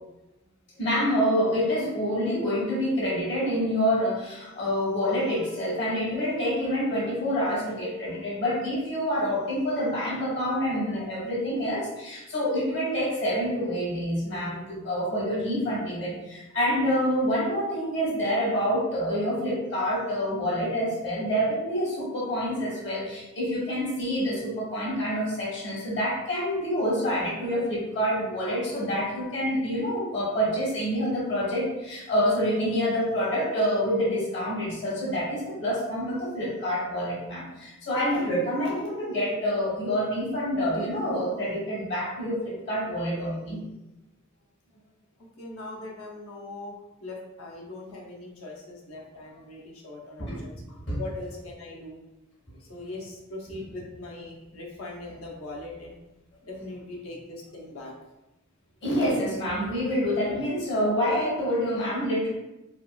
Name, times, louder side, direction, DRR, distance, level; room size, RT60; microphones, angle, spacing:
voice 1, 0.8-43.6 50.2-50.4 50.9-51.0 58.8-62.3, equal, 55° left, -7 dB, 1.1 m, -27 dB
voice 2, 45.4-50.6 51.0-52.0 52.6-56.0 56.4-57.9, left 2 dB, 80° left, -1 dB, 0.7 m, -40 dB
3.6 x 2.3 x 2.2 m, 0.97 s
head